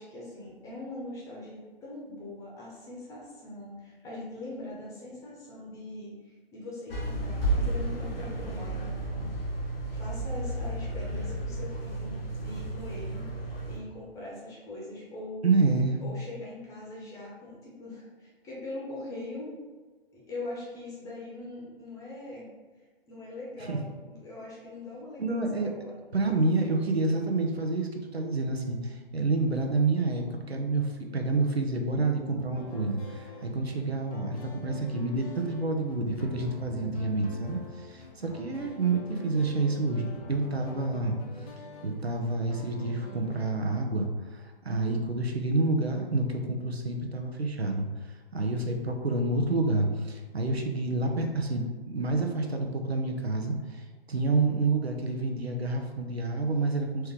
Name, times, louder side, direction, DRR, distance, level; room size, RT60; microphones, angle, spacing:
voice 1, 0.0-9.3 9.5-13.3 13.7-15.5 16.0-19.5 20.1-22.5 23.1-26.0 56.5-56.7, left 2 dB, 10° left, -5 dB, 0.9 m, -42 dB
sound 1, 6.9-13.8, right 1 dB, 70° left, 1.2 m, -32 dB
voice 2, 15.4-16.0 23.7-23.8 25.2-25.7 26.1-41.2 41.8-47.9 48.3-57.1, right 3 dB, 90° right, 3 dB, 0.8 m, -28 dB
sound 2, 32.5-43.5, left 3 dB, 35° left, 0.7 m, -46 dB
4.4 x 3.2 x 3.5 m, 1.4 s
figure-of-eight pair, 135°, 30 cm